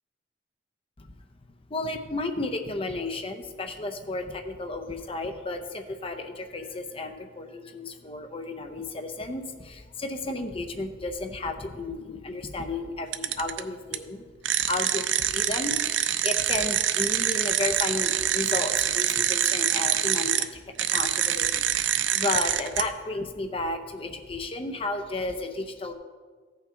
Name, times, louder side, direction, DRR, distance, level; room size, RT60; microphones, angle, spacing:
voice 1, 1.7-14.3 14.6-25.9, left 2 dB, 30° left, 6 dB, 0.6 m, -33 dB
sound 1, 13.1-13.6 13.9-14.0 14.4-20.4 20.8-22.8, right 11 dB, 70° right, 0.5 m, -25 dB
14.5 x 5.8 x 3.8 m, 1.5 s
head